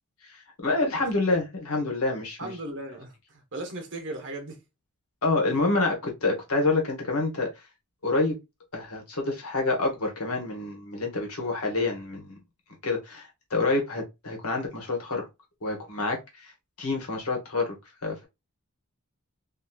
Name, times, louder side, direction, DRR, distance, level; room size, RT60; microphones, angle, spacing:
voice 1, 0.2-2.5 5.2-7.6 8.0-8.4 8.7-12.4 12.8-15.3 15.6-16.5 16.8-17.8 18.0-18.2, left 3 dB, 75° left, 1.2 m, -27 dB
voice 2, 2.4-4.6, right 1 dB, 55° right, 0.9 m, -37 dB
2.8 x 2.7 x 2.3 m
head